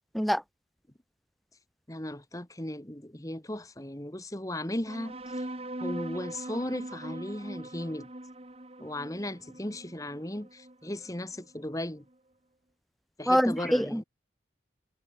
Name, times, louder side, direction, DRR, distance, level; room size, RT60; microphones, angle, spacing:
voice 1, 1.9-5.5 5.8-8.1 8.8-12.1 13.2-14.0, left 1 dB, 20° left, 1.7 m, -36 dB
sound 1, 4.9-11.8, right 1 dB, 35° right, 2.0 m, -41 dB
voice 2, 13.3-14.0, equal, ahead, 0.6 m, -25 dB
head